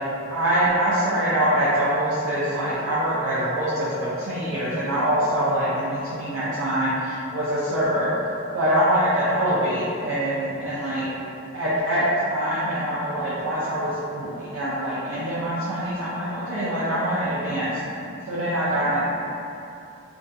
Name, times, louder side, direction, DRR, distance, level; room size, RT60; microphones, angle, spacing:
voice 1, 0.3-8.1 8.5-11.0 11.5-17.8 18.3-19.0, right 1 dB, 75° right, -10 dB, 0.4 m, -24 dB
2.5 x 2.4 x 2.2 m, 2.8 s
head